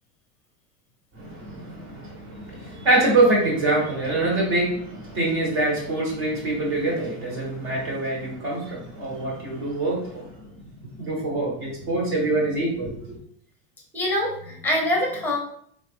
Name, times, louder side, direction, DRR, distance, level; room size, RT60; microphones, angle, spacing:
voice 1, 1.1-10.3 11.0-13.2, right 2 dB, 50° right, -3 dB, 1.4 m, -25 dB
voice 2, 13.9-15.4, left 1 dB, 5° left, -1 dB, 0.7 m, -24 dB
3.4 x 2.5 x 2.5 m, 0.65 s
supercardioid pair, 140°, 45 cm